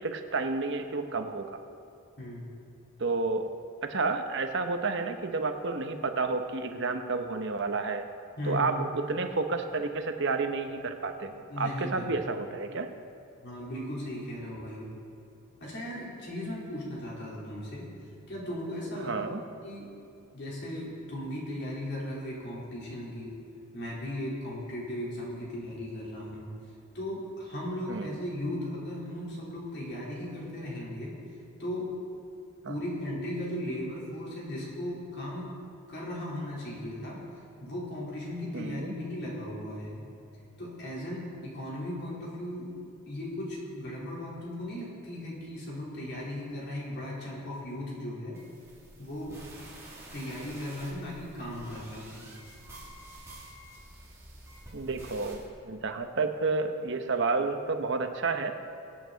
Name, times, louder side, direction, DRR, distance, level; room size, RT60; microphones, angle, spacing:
voice 1, 0.0-1.5 3.0-3.5 3.8-8.1 8.4-12.9 19.0-19.4 27.9-28.1 32.6-32.7 38.5-38.9 54.7-58.6, right 3 dB, 55° right, 7 dB, 0.9 m, -30 dB
voice 2, 2.2-2.5 8.4-8.8 11.5-12.1 13.4-14.9 15.6-17.9 18.3-19.2 19.6-20.0 20.3-23.4 23.7-26.6 26.9-31.2 31.6-32.0 32.7-35.5 35.9-37.3 37.6-40.0 40.6-42.8 43.1-48.4 49.0-49.5 50.1-52.3, left 1 dB, 50° left, -5 dB, 3.7 m, -37 dB
sound 1, 48.3-55.5, right 1 dB, 15° right, 2.6 m, -49 dB
23.5 x 8.5 x 4.0 m, 2.6 s
head